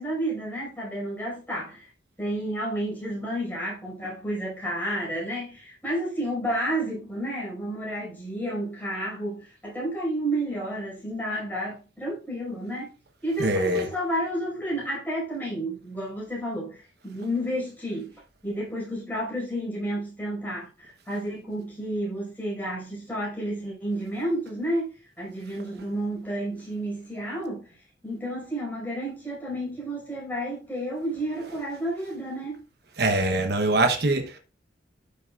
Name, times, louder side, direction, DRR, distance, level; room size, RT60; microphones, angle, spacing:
voice 1, 0.0-1.8 2.2-12.9 13.2-18.1 18.4-27.7 28.0-32.6, right 1 dB, 10° left, 5.5 m, -31 dB
voice 2, 13.4-13.9 33.0-34.4, right 2 dB, 55° right, 1.1 m, -23 dB
12.0 x 6.9 x 2.5 m
head